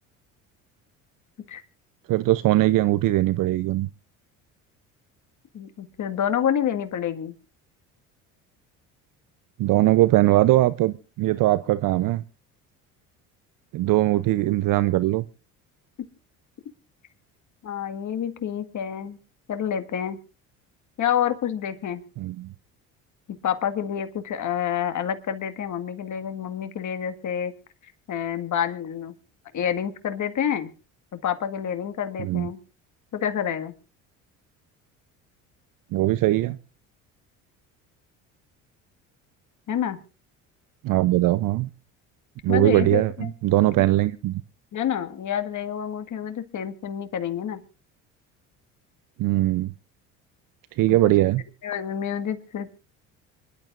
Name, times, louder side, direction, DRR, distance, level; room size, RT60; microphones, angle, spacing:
voice 1, 2.1-3.9 9.6-12.2 13.7-15.3 22.2-22.5 32.2-32.5 35.9-36.6 40.8-41.7 42.4-44.4 49.2-49.7 50.8-51.4, right 16 dB, 55° right, 16 dB, 0.7 m, -21 dB
voice 2, 5.5-7.3 17.6-19.2 19.5-20.2 21.0-22.0 23.4-27.5 28.1-29.1 29.5-30.7 31.1-32.6 33.1-33.7 39.7-40.0 42.5-43.3 43.8-43.9 44.7-47.6 50.9-51.1 51.6-52.7, left 9 dB, 50° left, 9 dB, 1.9 m, -28 dB
26.0 x 12.0 x 2.5 m, 0.32 s
hypercardioid pair, 70°, 39 cm